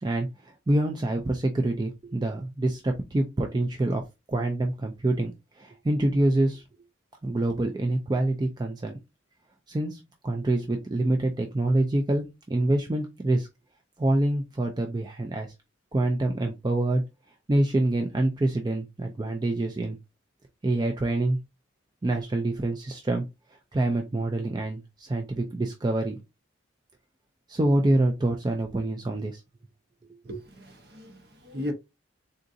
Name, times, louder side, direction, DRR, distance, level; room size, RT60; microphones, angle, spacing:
voice 1, 0.0-4.0 4.3-6.6 7.2-9.0 9.7-13.5 14.0-15.5 15.9-17.0 17.5-20.0 20.6-21.4 22.0-23.3 23.7-26.2 27.5-29.4, right 1 dB, 20° right, 0.3 m, -26 dB
voice 2, 30.3-31.7, equal, 50° right, 0.8 m, -36 dB
3.8 x 2.5 x 2.5 m
head